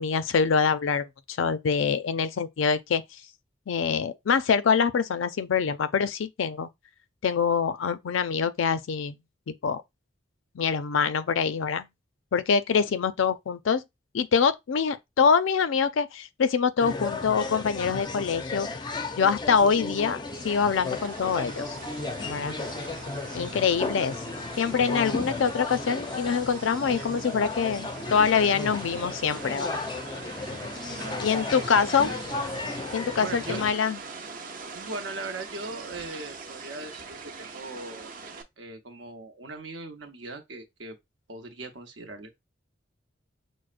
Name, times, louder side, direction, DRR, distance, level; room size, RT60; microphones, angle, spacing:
voice 1, 0.0-3.0 3.7-6.7 7.2-9.2 9.5-9.8 10.5-11.9 12.3-13.8 14.1-18.7 19.2-21.8 22.2-22.6 23.3-24.2 24.6-29.8 31.2-32.1 32.9-34.0, left 6 dB, 85° left, 0.4 m, -25 dB
sound 1, 16.8-33.7, left 3 dB, 25° left, 0.4 m, -35 dB
sound 2, 20.3-38.4, right 4 dB, 45° right, 0.6 m, -42 dB
voice 2, 30.9-32.2 33.2-33.6 34.7-38.1 38.6-41.0 41.3-42.4, right 2 dB, 70° right, 0.8 m, -39 dB
6.2 x 2.1 x 2.4 m
head